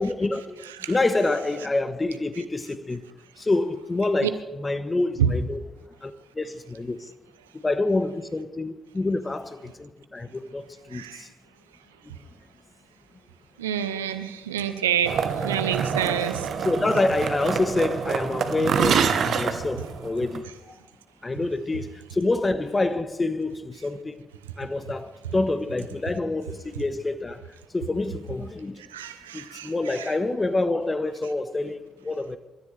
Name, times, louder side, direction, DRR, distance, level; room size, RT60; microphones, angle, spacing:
voice 1, 0.0-3.0 3.4-5.6 6.0-7.1 7.5-11.3 12.0-12.1 16.6-20.8 21.2-24.2 24.6-27.4 27.7-28.8 29.3-32.4, left 2 dB, 25° left, 1.1 m, -27 dB
voice 2, 13.6-15.1 15.4-16.3 28.9-30.1, right 9 dB, 85° right, 0.8 m, -27 dB
sound 1, 15.0-20.4, right 7 dB, 55° right, 1.2 m, -26 dB
27.5 x 13.0 x 3.4 m
figure-of-eight pair, 45°, 0 cm